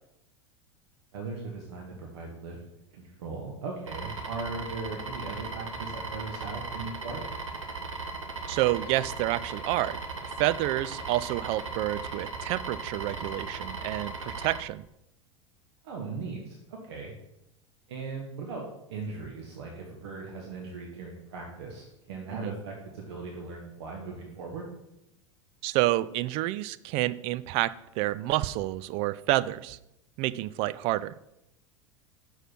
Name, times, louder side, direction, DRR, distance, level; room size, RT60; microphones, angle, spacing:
voice 1, 1.1-7.2 15.8-17.1 17.9-24.6, right 3 dB, 60° right, 0 dB, 1.3 m, -39 dB
sound 1, 3.9-14.6, right 3 dB, 75° right, 1.0 m, -37 dB
voice 2, 8.5-14.8 22.3-22.6 25.6-29.8 30.2-31.1, right 16 dB, 40° right, 15 dB, 0.3 m, -29 dB
6.2 x 4.8 x 5.8 m, 0.84 s
figure-of-eight pair, 85°, 16 cm